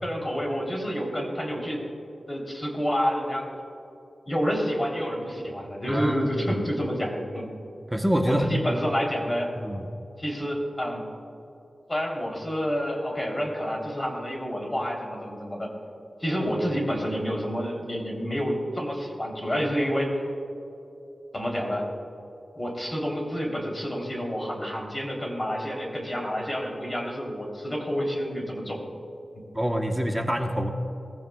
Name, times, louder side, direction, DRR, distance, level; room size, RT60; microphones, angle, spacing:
voice 1, 0.0-1.8 2.3-3.5 4.3-7.5 8.3-9.5 10.2-11.0 11.9-15.7 16.2-20.3 21.3-21.9 22.6-28.8, equal, 20° left, -1 dB, 3.3 m, -29 dB
voice 2, 5.9-6.6 7.9-8.5 9.6-9.9 29.5-30.7, equal, 10° right, 3 dB, 1.0 m, -26 dB
20.5 x 15.0 x 2.3 m, 2.8 s
wide cardioid pair, 95°, 0 cm